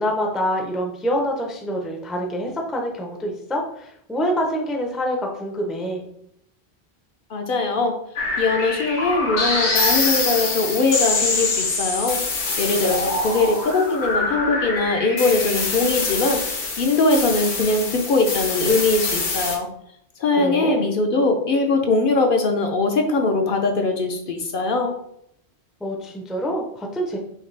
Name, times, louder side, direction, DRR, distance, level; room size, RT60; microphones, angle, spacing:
voice 1, 0.0-6.0 20.4-20.8 25.8-27.2, equal, ahead, 1 dB, 0.4 m, -26 dB
voice 2, 7.3-8.0 8.4-12.2 12.6-19.7 20.2-24.9, left 3 dB, 60° left, 3 dB, 0.7 m, -21 dB
sound 1, 8.2-19.6, left 3 dB, 90° left, 1.2 m, -24 dB
4.9 x 3.2 x 3.2 m, 0.73 s
omnidirectional pair, 1.1 m